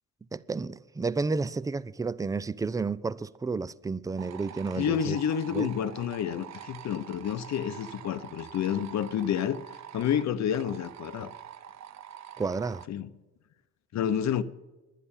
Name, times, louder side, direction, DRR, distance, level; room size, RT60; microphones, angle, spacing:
voice 1, 0.3-5.2 5.5-5.7 12.4-12.8, right 4 dB, 10° right, 0.4 m, -31 dB
sound 1, 4.2-12.9, right 10 dB, 65° right, 0.6 m, -46 dB
voice 2, 4.8-9.6 9.9-11.3 12.9-13.1 13.9-14.4, left 9 dB, 65° left, 0.8 m, -29 dB
11.0 x 10.0 x 7.1 m
cardioid pair, 90°, 30 cm